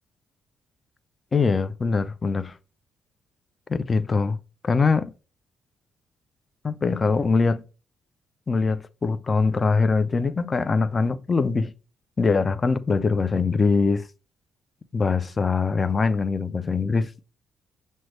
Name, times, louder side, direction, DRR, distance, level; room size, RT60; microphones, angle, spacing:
voice 1, 1.3-2.6 3.7-4.4 4.6-5.1 6.6-7.6 8.5-11.7 12.2-14.1 14.9-17.1, left 4 dB, 30° left, 0.3 m, -22 dB
6.1 x 2.1 x 3.1 m
cardioid pair, 90°, 0 cm